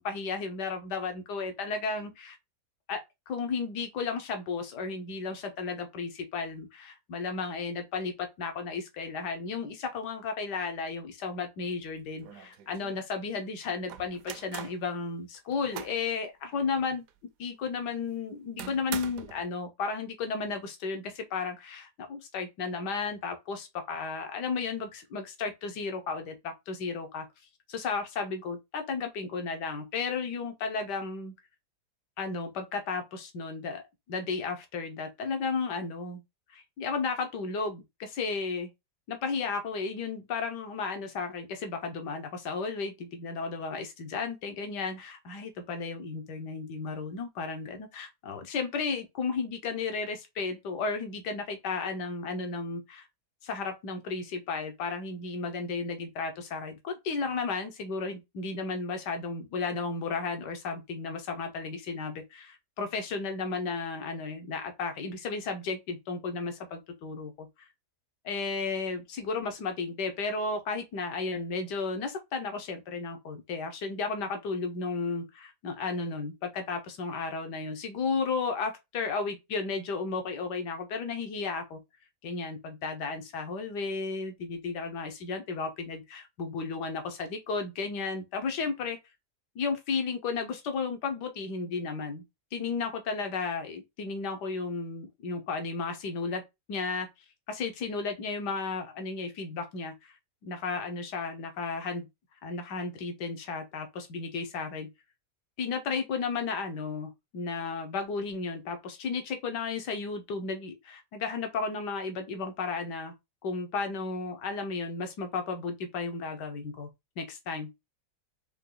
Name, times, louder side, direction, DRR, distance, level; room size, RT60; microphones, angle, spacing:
voice 1, 0.0-2.4 2.9-3.0 3.3-17.0 17.4-27.3 27.7-31.3 32.2-33.8 34.1-36.2 36.5-38.7 39.1-53.0 53.4-67.7 68.2-81.8 82.2-89.0 89.5-92.2 92.5-96.4 96.7-97.1 97.5-100.1 100.4-102.1 102.4-104.9 105.6-113.1 113.4-116.9 117.2-117.7, left 4 dB, 85° left, 1.6 m, -34 dB
sound 1, 11.8-11.9 12.2-13.0 13.9-14.8 15.3-16.1 16.5-16.6 17.1-17.2 18.6-19.4, right 9 dB, 70° right, 0.9 m, -42 dB
4.6 x 2.9 x 3.8 m
omnidirectional pair, 1.8 m